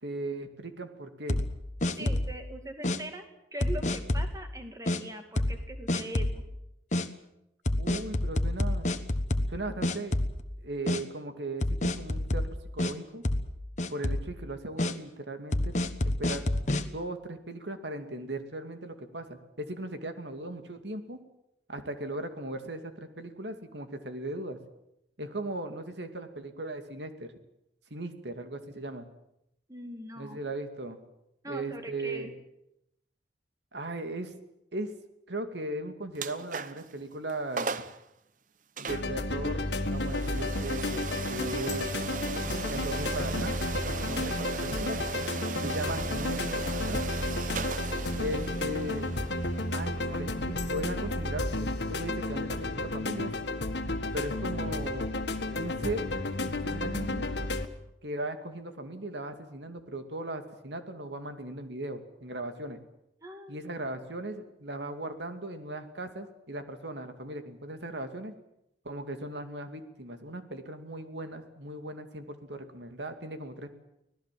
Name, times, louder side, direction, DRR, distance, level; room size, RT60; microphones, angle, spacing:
voice 1, 0.0-1.4 2.0-2.1 7.8-8.9 9.5-10.2 10.6-12.5 12.7-13.2 13.9-15.8 16.0-16.5 16.9-21.2 21.7-24.6 25.2-27.3 27.9-29.1 30.2-31.0 31.5-32.3 33.7-34.3 34.7-34.9 35.3-37.7 38.8-41.9 42.7-43.5 43.8-45.0 45.6-47.0 48.1-49.1 49.7-53.3 54.1-55.1 55.5-56.0 56.4-57.3 58.0-62.8 63.5-68.3 68.8-73.8, right 1 dB, 80° right, 7 dB, 2.5 m, -38 dB
sound 1, 1.3-2.4 2.8-3.0 3.6-4.4 4.9-5.0 5.4-5.6 5.9-6.4 6.9-7.1 7.7-9.6 9.8-10.6 10.9-11.0 11.6-12.9 13.2-13.5 13.8-14.3 14.8-14.9 15.5-16.8, left 1 dB, 40° left, 1.2 m, -28 dB
voice 2, 2.0-6.4 29.7-30.4 31.4-32.3 63.2-63.6, right 1 dB, 20° right, 6 dB, 2.4 m, -41 dB
sound 2, 36.1-36.9 37.3-37.4 37.6-38.0 38.8-51.5, right 4 dB, 45° right, 0.9 m, -38 dB
sound 3, 38.9-57.7, left 1 dB, 75° left, 1.8 m, -32 dB
25.0 x 18.0 x 7.7 m, 0.82 s
head